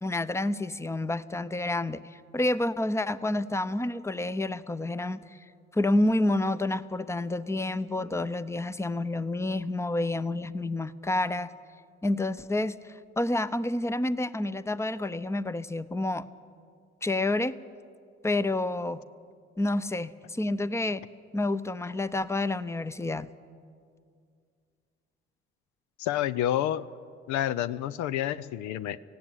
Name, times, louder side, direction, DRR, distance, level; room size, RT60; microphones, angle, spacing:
voice 1, 0.0-5.4 5.7-11.5 12.0-16.3 17.0-17.5 18.2-19.0 19.6-21.0 21.3-23.3, left 2 dB, 10° left, 17 dB, 0.8 m, -29 dB
voice 2, 26.0-26.9 27.3-29.0, left 12 dB, 70° left, 17 dB, 0.6 m, -29 dB
17.5 x 15.5 x 9.7 m, 2.3 s
hypercardioid pair, 45°, 30 cm